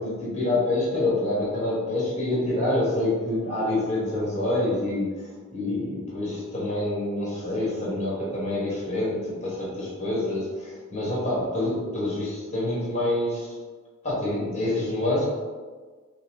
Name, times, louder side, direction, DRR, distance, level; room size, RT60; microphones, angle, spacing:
voice 1, 0.0-13.5 14.0-15.3, left 1 dB, 30° left, -6 dB, 1.4 m, -27 dB
5.7 x 2.0 x 3.6 m, 1.4 s
head